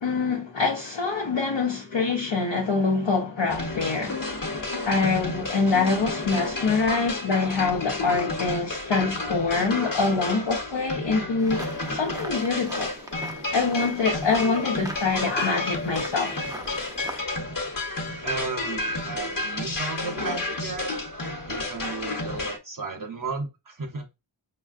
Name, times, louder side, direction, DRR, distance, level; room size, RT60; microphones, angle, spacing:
voice 1, 0.0-4.2 4.8-12.9 13.5-16.4 17.1-17.2, left 4 dB, 80° left, 0.8 m, -25 dB
sound 1, 3.5-22.6, left 2 dB, 50° left, 1.0 m, -31 dB
sound 2, 11.4-17.3, right 1 dB, 10° right, 0.5 m, -41 dB
voice 2, 18.2-20.9 21.5-24.1, right 4 dB, 50° right, 0.8 m, -34 dB
5.3 x 2.2 x 2.4 m
wide cardioid pair, 55°, 43 cm